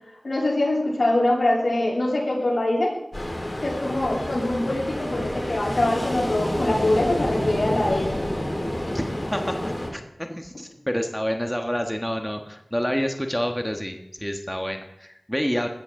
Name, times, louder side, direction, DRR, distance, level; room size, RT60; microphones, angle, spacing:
voice 1, 0.2-3.0 3.6-8.1, left 1 dB, 75° left, -4 dB, 7.3 m, -23 dB
Ocean, 3.1-9.9, left 1 dB, 35° left, 4.1 m, -29 dB
voice 2, 9.3-15.7, equal, 5° left, 4 dB, 1.4 m, -28 dB
20.0 x 14.0 x 3.8 m, 0.84 s
wide cardioid pair, 40°, 0 cm